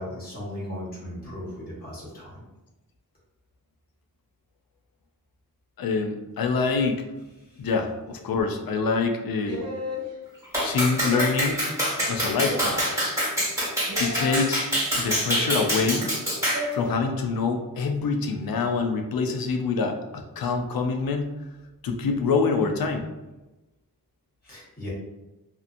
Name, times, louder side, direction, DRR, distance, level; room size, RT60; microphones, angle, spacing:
voice 1, 0.0-2.4 24.4-24.9, left 1 dB, 25° left, -8 dB, 1.3 m, -37 dB
voice 2, 5.8-7.1 7.6-9.7 10.6-11.6 12.1-12.8 14.0-14.7 15.0-16.1 16.7-21.3 21.8-23.1, left 4 dB, 75° left, 5 dB, 0.5 m, -25 dB
sound 1, 9.5-10.1 10.9-11.6 12.5-12.9 13.9-14.4 15.3-15.8 16.5-16.9, left 1 dB, 45° right, 0.5 m, -33 dB
Clapping, 10.5-16.7, equal, 10° right, 1.4 m, -26 dB
2.7 x 2.5 x 2.5 m, 1.1 s
wide cardioid pair, 120°, 36 cm